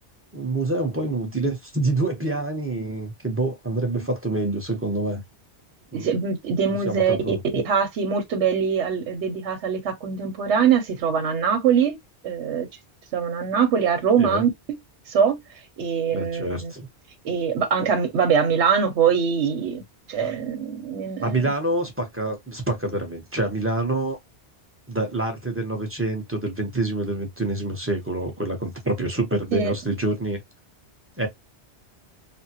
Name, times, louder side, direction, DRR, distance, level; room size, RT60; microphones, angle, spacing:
voice 1, 0.3-5.2 5.9-6.1 6.9-7.4 14.2-14.4 16.1-16.9 21.2-24.2 24.9-30.4 31.2-31.3, right 2 dB, 15° right, 0.7 m, -26 dB
voice 2, 5.9-12.0 12.2-12.7 13.1-14.8 15.1-15.4 15.8-16.7 17.2-19.8 20.1-21.5 29.5-29.7, right 7 dB, 85° right, 1.1 m, -23 dB
3.3 x 2.1 x 2.7 m
omnidirectional pair, 1.2 m